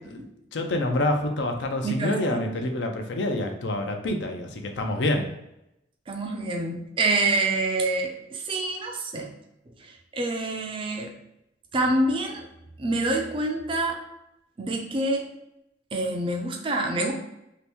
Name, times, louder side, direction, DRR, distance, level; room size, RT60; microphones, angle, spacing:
voice 1, 0.5-5.3, left 1 dB, 70° left, 4 dB, 0.5 m, -27 dB
voice 2, 1.8-2.5 6.1-9.3 9.8-11.1 11.7-12.5 12.8-14.0 14.6-15.3 15.9-17.1, right 2 dB, 30° right, 2 dB, 0.4 m, -27 dB
2.8 x 2.5 x 3.4 m, 0.86 s
head